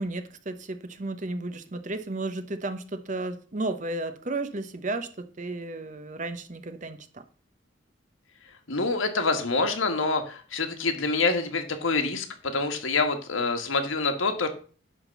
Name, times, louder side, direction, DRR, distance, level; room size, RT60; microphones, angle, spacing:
voice 1, 0.0-7.2, right 2 dB, 40° right, 9 dB, 0.9 m, -33 dB
voice 2, 8.7-14.5, left 3 dB, 85° left, 6 dB, 1.6 m, -26 dB
10.5 x 3.7 x 6.9 m, 0.40 s
head